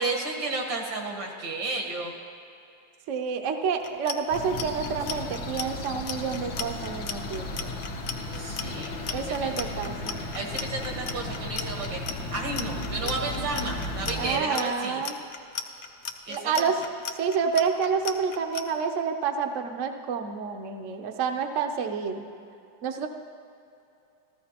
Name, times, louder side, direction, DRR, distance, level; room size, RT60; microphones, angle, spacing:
voice 1, 0.0-2.1 8.3-9.5 10.3-12.0 12.3-15.0 16.3-16.7, right 3 dB, 85° right, 0 dB, 2.2 m, -32 dB
voice 2, 3.1-7.7 9.1-10.2 14.2-15.1 16.3-16.8 17.2-22.2 22.8-23.1, right 6 dB, 60° right, 5 dB, 0.8 m, -29 dB
Clock, 3.8-18.6, left 7 dB, 70° left, 0.6 m, -35 dB
sound 1, 4.3-14.4, left 1 dB, 85° left, 1.7 m, -35 dB
15.5 x 14.0 x 2.9 m, 2.7 s
omnidirectional pair, 2.0 m